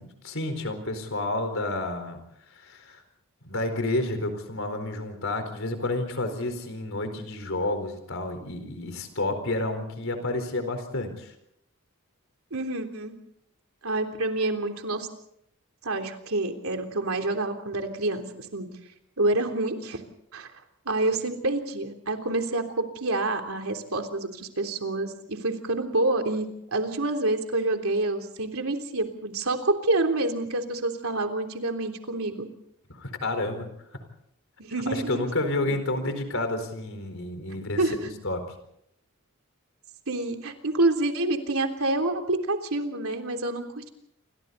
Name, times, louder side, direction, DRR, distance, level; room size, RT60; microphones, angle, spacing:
voice 1, 0.0-2.2 2.5-3.0 3.4-11.3 32.9-33.7 34.9-38.6, left 2 dB, 70° left, 7 dB, 4.4 m, -30 dB
voice 2, 12.5-13.1 13.8-15.1 15.8-18.7 19.2-20.0 20.3-20.5 20.9-32.5 34.6-35.3 37.8-37.9 40.1-43.9, right 2 dB, 80° right, 4 dB, 3.4 m, -27 dB
28.5 x 25.0 x 4.1 m, 0.73 s
head